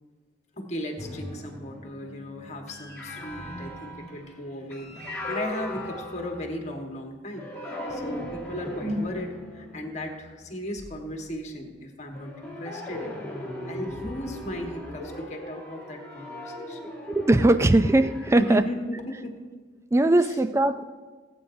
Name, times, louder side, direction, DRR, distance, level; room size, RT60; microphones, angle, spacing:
voice 1, 0.6-13.1 13.6-17.0 18.4-19.5 20.2-20.4, equal, 40° left, 2 dB, 1.4 m, -36 dB
sound 1, 1.0-6.9 7.4-11.3 12.1-18.6, left 1 dB, 10° left, 1.9 m, -38 dB
voice 2, 17.1-18.6 19.9-20.8, right 2 dB, 15° right, 11 dB, 0.3 m, -20 dB
19.5 x 8.5 x 2.7 m, 1.4 s
head